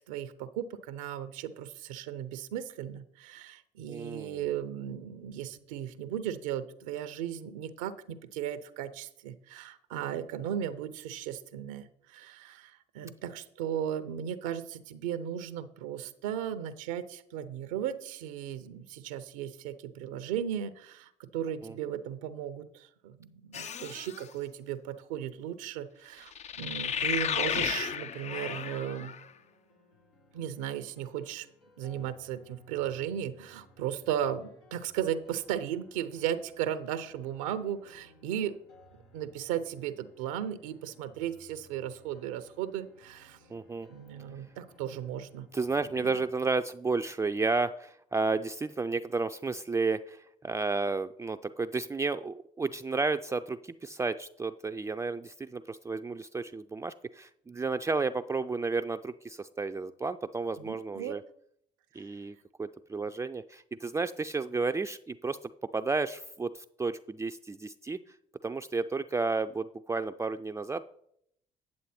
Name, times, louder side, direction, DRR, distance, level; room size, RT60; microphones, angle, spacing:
voice 1, 0.0-26.3 26.6-29.2 30.3-31.5 31.8-38.6 39.1-43.4 43.9-45.5 46.0-46.1 60.6-61.2 62.0-62.2, right 10 dB, 80° right, 13 dB, 0.6 m, -36 dB
voice 2, 3.9-4.5 21.6-21.7 43.5-43.9 45.5-61.2 61.9-65.4 65.7-68.0 68.4-70.8, right 3 dB, 15° right, 7 dB, 0.4 m, -32 dB
sound 1, 23.5-24.2 26.3-29.2, left 8 dB, 45° left, 0.6 m, -33 dB
sound 2, 26.5-46.3, left 1 dB, 85° left, 1.6 m, -60 dB
9.5 x 7.3 x 4.3 m, 0.71 s
hypercardioid pair, 60°, 16 cm